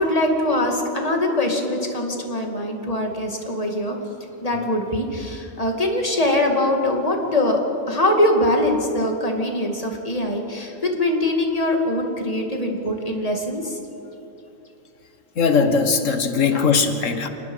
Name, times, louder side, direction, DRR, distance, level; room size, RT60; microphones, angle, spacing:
voice 1, 0.0-4.0 4.4-7.6 7.9-13.8, left 1 dB, 30° left, 2 dB, 2.3 m, -22 dB
voice 2, 15.4-17.3, left 5 dB, 75° left, 8 dB, 1.7 m, -19 dB
27.0 x 19.0 x 5.6 m, 2.9 s
omnidirectional pair, 1.3 m